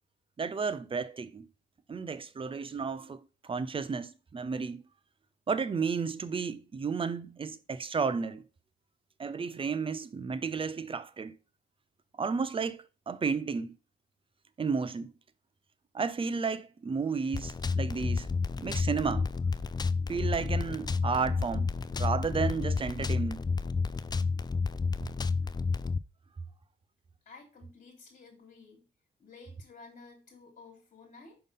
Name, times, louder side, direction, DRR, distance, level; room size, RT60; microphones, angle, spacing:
voice 1, 0.4-1.5 1.9-4.8 5.5-8.4 9.2-11.4 12.2-13.8 14.6-15.1 15.9-18.3 18.6-19.3 20.1-23.4, right 5 dB, 25° right, 0.6 m, -32 dB
sound 1, 17.3-26.0, left 4 dB, 20° left, 0.4 m, -30 dB
voice 2, 27.2-28.8 29.2-31.4, left 4 dB, 40° left, 3.4 m, -53 dB
5.7 x 5.4 x 3.6 m
cardioid pair, 90°, 20 cm